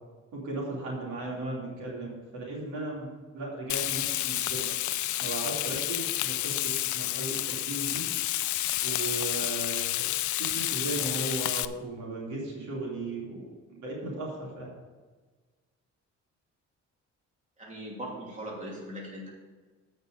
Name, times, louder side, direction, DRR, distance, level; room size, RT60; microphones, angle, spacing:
voice 1, 0.3-3.1 3.3-4.7 5.2-8.1 8.8-10.0 10.4-14.7, right 2 dB, 70° right, -3 dB, 3.0 m, -36 dB
Frying (food), 3.7-11.6, left 15 dB, 75° left, 0.5 m, -30 dB
voice 2, 17.6-19.3, equal, 25° right, -4 dB, 2.9 m, -39 dB
8.0 x 5.4 x 7.7 m, 1.3 s
cardioid pair, 90°, 30 cm